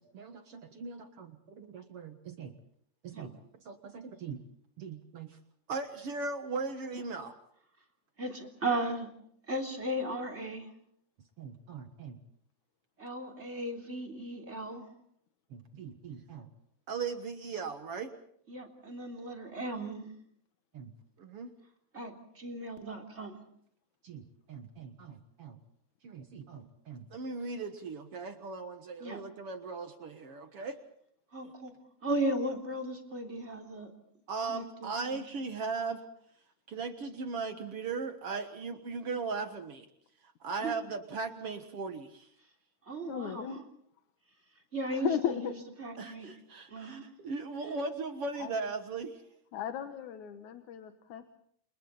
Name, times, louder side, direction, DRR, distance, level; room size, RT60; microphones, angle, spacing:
voice 1, 0.0-1.1 1.6-2.5 3.0-3.3 3.7-4.4 4.8-5.4 5.7-7.4 11.4-12.2 15.5-16.5 16.9-18.1 20.7-20.9 21.2-21.5 24.0-25.6 26.0-30.8 31.4-31.5 34.3-36.1 36.7-39.9 40.4-42.3 46.0-49.2, right 4 dB, 55° right, 8 dB, 2.2 m, -38 dB
voice 2, 8.2-9.1 9.5-10.7 13.0-14.9 18.5-20.1 21.9-23.4 29.0-29.2 31.3-31.7 32.0-33.9 34.5-35.2 40.6-40.7 42.9-43.6 44.7-46.3 46.7-47.0 47.6-47.8, right 1 dB, 20° right, 3 dB, 3.6 m, -36 dB
voice 3, 43.1-43.6 44.9-45.5 48.4-48.5 49.5-51.2, left 9 dB, 80° left, 7 dB, 2.7 m, -35 dB
29.5 x 28.5 x 4.1 m, 0.66 s
omnidirectional pair, 3.3 m